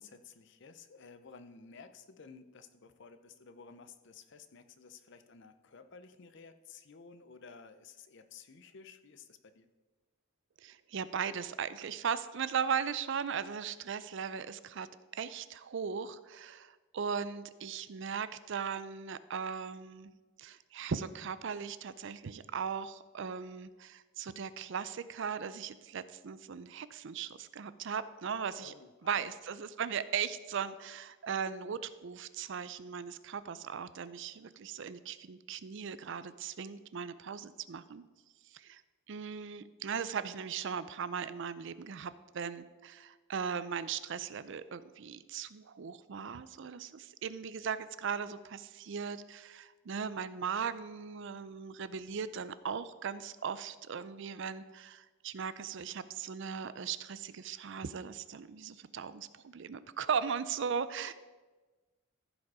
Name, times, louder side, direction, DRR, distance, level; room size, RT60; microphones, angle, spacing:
voice 1, 0.0-9.7 28.6-29.3, left 5 dB, 60° left, 10 dB, 0.7 m, -54 dB
voice 2, 10.6-14.9 15.1-20.1 20.4-28.7 29.0-38.0 38.5-38.8 39.1-61.1, right 6 dB, 60° right, 15 dB, 0.5 m, -38 dB
14.5 x 5.1 x 4.8 m, 1.2 s
head